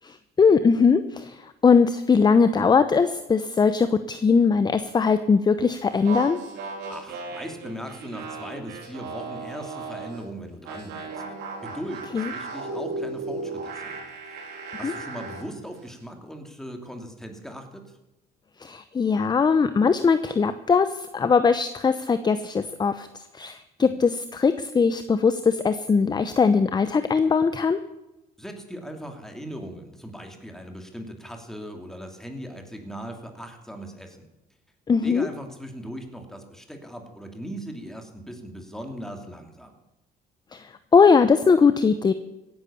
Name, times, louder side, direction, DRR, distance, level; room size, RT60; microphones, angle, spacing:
voice 1, 0.0-6.4 12.1-12.3 14.8-14.9 18.6-27.8 34.9-35.3 40.5-42.1, left 5 dB, 25° left, 11 dB, 0.8 m, -20 dB
sound 1, 5.9-10.2 10.7-15.5, right 3 dB, 85° right, 3.8 m, -36 dB
voice 2, 6.5-11.2 11.6-14.5 14.8-17.8 23.8-23.9 28.4-34.3 35.0-39.7, equal, 5° left, 4 dB, 2.9 m, -39 dB
16.5 x 10.5 x 7.0 m, 1.0 s
cardioid pair, 110°, 17 cm